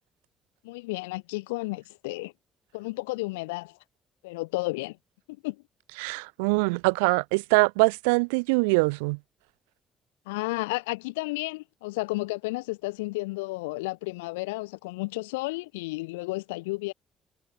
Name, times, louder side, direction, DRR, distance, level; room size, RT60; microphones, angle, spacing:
voice 1, 0.6-2.3 2.7-3.8 4.2-5.0 5.4-5.6 10.3-16.9, left 23 dB, 85° left, 1.4 m, -32 dB
voice 2, 6.0-9.2, right 30 dB, 85° right, 0.5 m, -23 dB
hypercardioid pair, 50°, 0 cm